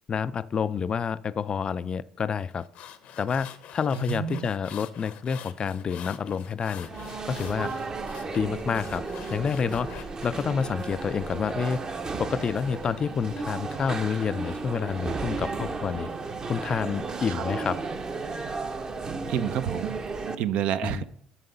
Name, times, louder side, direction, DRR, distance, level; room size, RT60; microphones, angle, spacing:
voice 1, 0.1-2.7 3.2-6.9 7.2-7.7 8.3-9.0 9.3-11.8 12.2-16.1 16.5-17.8 20.8-21.0, left 6 dB, 40° left, 17 dB, 0.3 m, -28 dB
sound 1, 2.5-10.4, left 9 dB, 65° left, 0.7 m, -45 dB
voice 2, 3.9-4.5 17.3-17.4 19.3-20.0 20.4-21.0, right 10 dB, 65° right, 13 dB, 0.4 m, -29 dB
sound 2, 6.7-20.4, right 4 dB, 35° right, 0.7 m, -34 dB
5.7 x 5.4 x 6.7 m, 0.69 s
supercardioid pair, 75°, 2 cm